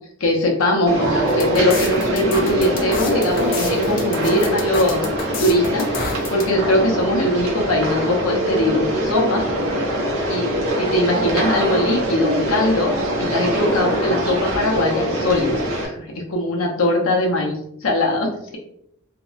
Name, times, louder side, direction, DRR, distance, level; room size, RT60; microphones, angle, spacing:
voice 1, 0.2-5.1 5.4-9.5 10.3-10.5 10.8-12.9 13.2-17.5 17.8-18.6, left 1 dB, 90° left, 0 dB, 0.7 m, -21 dB
sound 1, 0.9-15.9, right 1 dB, 75° right, 0.7 m, -23 dB
sound 2, 1.3-6.5, left 5 dB, 45° left, 0.4 m, -30 dB
2.7 x 2.1 x 2.4 m, 0.73 s
head